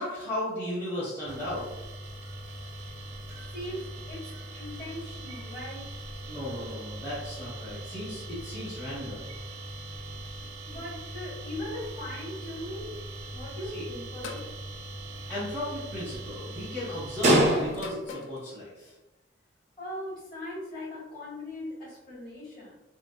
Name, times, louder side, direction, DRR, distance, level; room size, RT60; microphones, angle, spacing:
voice 1, 0.0-1.7 6.3-9.3 13.7-13.9 15.3-18.9, left 1 dB, 15° left, -12 dB, 0.7 m, -35 dB
sound 1, 1.3-18.1, right 1 dB, 35° right, 0.4 m, -34 dB
voice 2, 3.5-6.0 10.6-12.9 13.3-14.5 19.8-22.8, left 1 dB, 40° left, -7 dB, 1.3 m, -39 dB
sound 2, 14.2-14.6 15.8-16.1 17.7-18.4, left 4 dB, 70° left, 0.3 m, -41 dB
2.9 x 2.0 x 2.4 m, 1.0 s
head